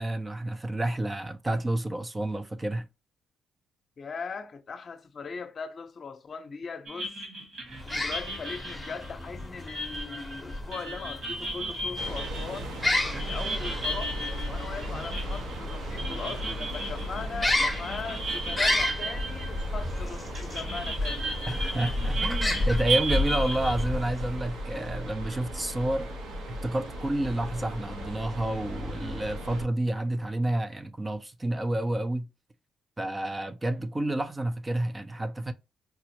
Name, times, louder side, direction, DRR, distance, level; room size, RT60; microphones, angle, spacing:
voice 1, 0.0-2.9 21.5-26.1 26.5-32.3 33.0-35.5, right 1 dB, 20° right, 0.4 m, -30 dB
voice 2, 4.0-7.2 7.8-12.8 13.1-14.2 14.5-21.3, left 5 dB, 45° left, 0.6 m, -39 dB
sound 1, 6.9-20.0 20.3-23.8, right 2 dB, 55° right, 1.6 m, -35 dB
sound 2, 7.7-24.5, left 1 dB, 5° left, 0.7 m, -32 dB
sound 3, 11.9-29.6, equal, 85° right, 1.1 m, -37 dB
4.6 x 2.0 x 2.9 m
cardioid pair, 90°, 0 cm